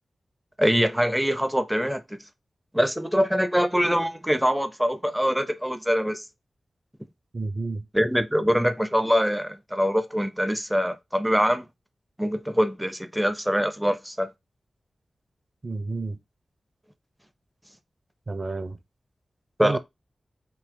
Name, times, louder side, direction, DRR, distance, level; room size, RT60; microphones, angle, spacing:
voice 1, 0.6-2.2 2.7-6.2 7.9-11.7 12.2-14.3 19.6-19.8, equal, 5° right, 0.5 m, -24 dB
voice 2, 7.3-7.9 15.6-16.2 18.3-18.8 19.6-19.8, right 3 dB, 45° right, 0.7 m, -30 dB
3.9 x 2.8 x 4.5 m
wide cardioid pair, 75°, 0 cm